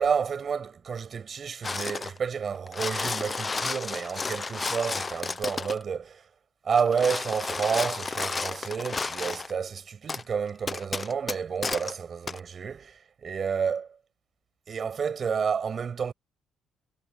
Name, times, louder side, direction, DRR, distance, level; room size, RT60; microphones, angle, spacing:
voice 1, 0.0-6.2 6.6-13.9 14.7-16.1, right 6 dB, 35° right, 6.4 m, -30 dB
sound 1, 1.6-2.2 2.6-5.8 6.7-9.5 10.1-10.2 10.7-11.9 12.3-12.4, left 4 dB, 20° left, 0.7 m, -32 dB
cardioid pair, 155°, 0 cm